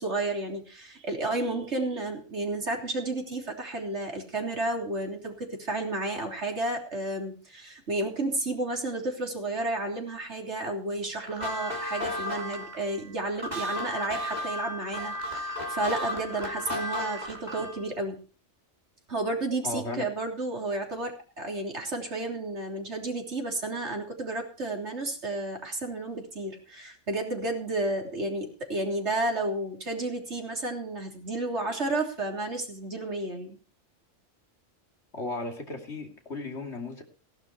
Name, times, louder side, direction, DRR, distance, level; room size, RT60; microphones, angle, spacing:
voice 1, 0.0-18.2 19.1-33.6, right 2 dB, 65° right, 2 dB, 3.6 m, -32 dB
sound 1, 11.2-17.8, left 1 dB, 35° right, 3.2 m, -34 dB
voice 2, 19.6-20.0 35.1-37.0, left 2 dB, 65° left, 3 dB, 3.1 m, -35 dB
16.5 x 11.5 x 4.6 m, 0.35 s
omnidirectional pair, 1.2 m